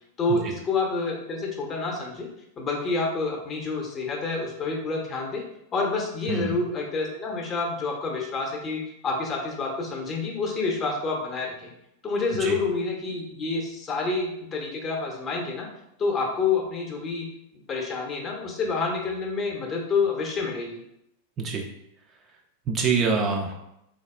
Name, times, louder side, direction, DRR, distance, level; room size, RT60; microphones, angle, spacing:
voice 1, 0.2-2.3 2.6-5.4 5.7-11.7 12.0-15.7 16.0-17.3 17.7-20.8, left 4 dB, 25° left, 0 dB, 0.6 m, -28 dB
voice 2, 21.4-21.7 22.7-23.5, right 4 dB, 25° right, 2 dB, 0.3 m, -26 dB
3.3 x 2.3 x 2.2 m, 0.79 s
figure-of-eight pair, 90°, 0 cm